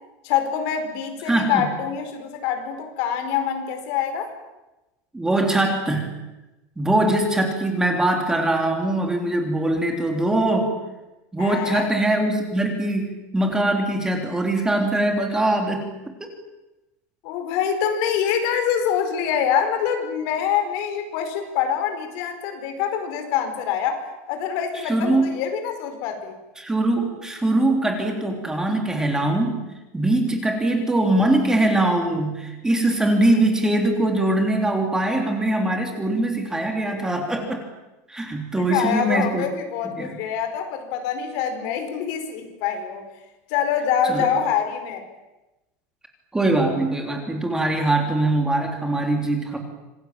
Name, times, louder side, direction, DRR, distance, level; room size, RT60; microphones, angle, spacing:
voice 1, 0.2-4.3 11.4-11.9 17.2-24.0 24.3-26.4 38.7-43.0 43.5-45.0, left 8 dB, 55° left, 7 dB, 5.0 m, -25 dB
voice 2, 1.3-1.7 5.1-6.1 6.8-10.7 11.3-16.0 24.9-25.3 26.6-29.6 29.9-37.6 38.1-39.4 40.0-40.1 44.1-44.3 46.3-49.6, right 1 dB, 5° right, 3 dB, 3.5 m, -22 dB
26.5 x 20.0 x 9.0 m, 1.0 s
supercardioid pair, 155°, 8 cm